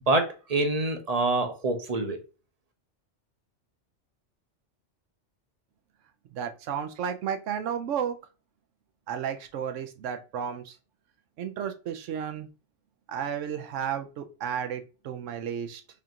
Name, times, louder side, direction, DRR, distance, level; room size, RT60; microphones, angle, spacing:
voice 1, 0.1-2.2, right 2 dB, 40° right, 0.6 m, -26 dB
voice 2, 6.3-8.2 9.1-10.8 11.4-12.5 13.1-15.8, right 8 dB, 85° right, 1.0 m, -33 dB
5.1 x 2.5 x 2.8 m
omnidirectional pair, 1.2 m